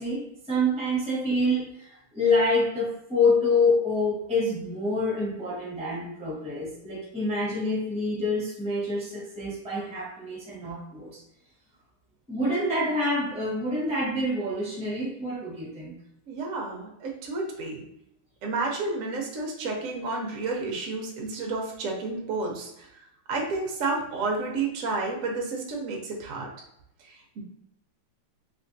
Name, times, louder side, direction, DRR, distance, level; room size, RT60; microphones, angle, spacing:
voice 1, 0.0-11.2 12.3-16.0, left 2 dB, 10° right, -5 dB, 0.4 m, -27 dB
voice 2, 16.3-17.8 18.4-26.5 27.0-27.4, right 3 dB, 70° right, 0 dB, 0.7 m, -31 dB
3.4 x 3.2 x 2.6 m, 0.78 s
omnidirectional pair, 2.4 m